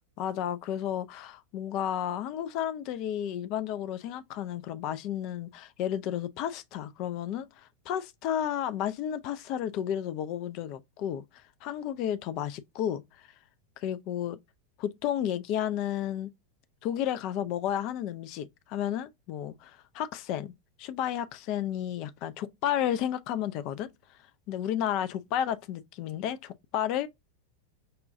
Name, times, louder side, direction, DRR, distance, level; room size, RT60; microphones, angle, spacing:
voice 1, 0.2-13.3 13.8-14.4 14.8-16.3 16.8-20.5 20.8-23.9 24.5-27.1, left 10 dB, 40° left, 0.4 m, -32 dB
5.4 x 2.3 x 2.5 m
figure-of-eight pair, 90°, 0 cm